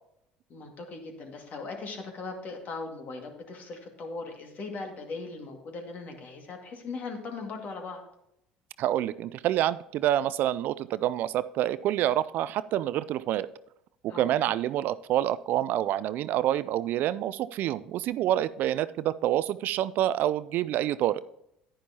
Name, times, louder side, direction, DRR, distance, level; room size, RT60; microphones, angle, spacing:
voice 1, 0.5-8.0 14.1-14.4, left 3 dB, 45° left, 3 dB, 2.1 m, -39 dB
voice 2, 8.8-13.5 14.0-21.2, right 12 dB, 55° right, 16 dB, 0.3 m, -27 dB
10.0 x 10.0 x 2.9 m, 0.77 s
hypercardioid pair, 65°, 4 cm